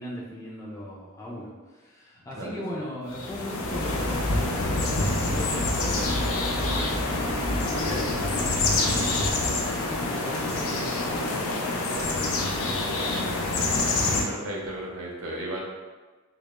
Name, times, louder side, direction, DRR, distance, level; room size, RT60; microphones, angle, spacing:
voice 1, 0.0-7.0 7.3-13.4, left 1 dB, 15° left, -4 dB, 0.3 m, -38 dB
sound 1, 3.1-14.2, left 2 dB, 80° left, 0.4 m, -27 dB
sound 2, 3.6-12.9 13.2-13.6 13.8-14.2 14.5-14.7, equal, 45° right, 0.7 m, -35 dB
voice 2, 13.9-15.6, right 1 dB, 85° right, -3 dB, 0.6 m, -35 dB
2.1 x 2.1 x 2.9 m, 1.3 s
head